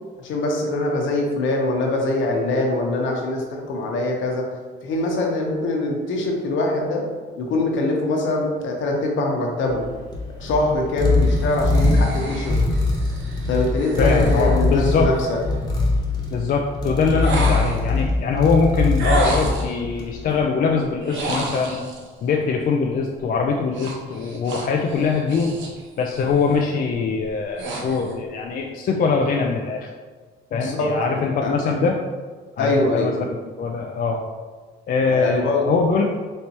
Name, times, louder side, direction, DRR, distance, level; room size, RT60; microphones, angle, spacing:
voice 1, 0.2-4.5 4.8-7.0 7.4-9.8 10.4-12.6 13.5-15.4 30.5-31.6 32.6-33.1 35.1-35.7, left 2 dB, 65° left, 0 dB, 1.0 m, -23 dB
sound 1, 9.7-20.3, left 2 dB, 20° left, 1.0 m, -22 dB
sound 2, 11.2-15.4 17.2-18.0 19.0-19.8 21.0-22.1 23.7-25.8 26.2-26.6 27.1-28.2, right 2 dB, 65° right, 0.8 m, -31 dB
voice 2, 14.0-15.1 16.3-21.8 22.2-25.6 26.0-29.9 30.5-32.0 32.6-33.3 33.6-34.2 34.9-36.0, left 4 dB, 45° left, 0 dB, 0.4 m, -22 dB
4.3 x 3.3 x 2.9 m, 1.4 s
cardioid pair, 100°, 21 cm